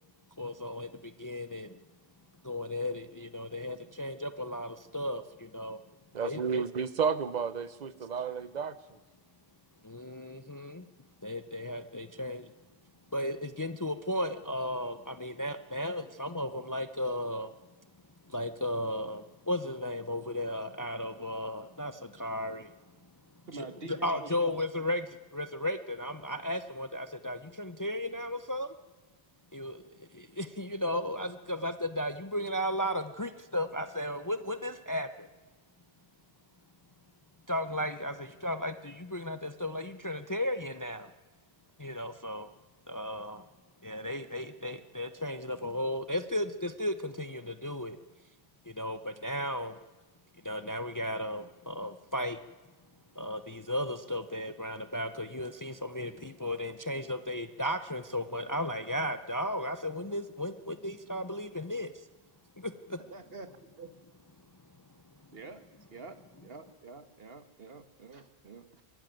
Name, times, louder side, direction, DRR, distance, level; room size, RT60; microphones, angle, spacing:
voice 1, 0.4-1.8 2.4-5.8 6.2-6.6 9.8-10.9 11.2-12.5 13.1-17.5 18.3-22.7 23.6-28.7 29.5-35.3 37.5-41.1 41.8-42.5 42.9-43.4 43.8-48.0 48.7-49.8 50.4-52.4 53.2-61.9 62.6-63.0, left 1 dB, 20° left, 11 dB, 0.6 m, -35 dB
voice 2, 6.1-8.8, right 6 dB, 45° right, 15 dB, 0.9 m, -31 dB
voice 3, 23.5-24.5 63.1-63.5 63.8-63.9 65.3-65.6 65.9-68.8, right 3 dB, 65° right, 9 dB, 1.7 m, -47 dB
23.5 x 13.5 x 9.3 m, 1.2 s
omnidirectional pair, 1.1 m